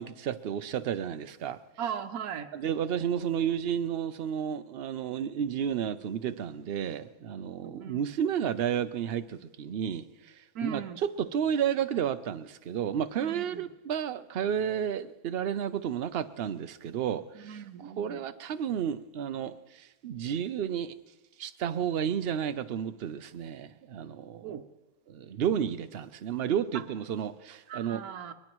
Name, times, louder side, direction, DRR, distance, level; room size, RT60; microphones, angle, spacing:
voice 1, 0.0-1.6 2.5-10.1 10.6-20.9 21.4-24.5 25.1-28.0, right 8 dB, 55° right, 0.7 m, -32 dB
voice 2, 1.8-2.5 7.6-8.0 10.5-11.0 13.1-13.7 17.3-18.2 24.4-24.6 26.7-26.8 27.7-28.3, right 8 dB, 80° right, 1.3 m, -38 dB
23.0 x 20.5 x 3.0 m
omnidirectional pair, 1.5 m